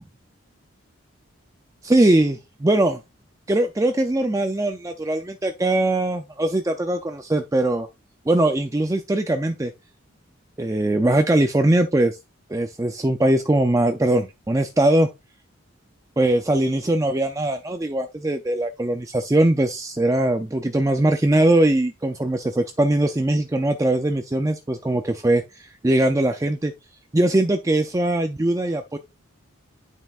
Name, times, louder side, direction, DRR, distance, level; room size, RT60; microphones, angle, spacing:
voice 1, 1.8-3.0 3.5-7.9 8.3-9.7 10.6-12.2 12.5-15.1 16.2-26.7 27.1-29.0, right 1 dB, 15° right, 0.4 m, -21 dB
9.6 x 5.4 x 2.4 m
head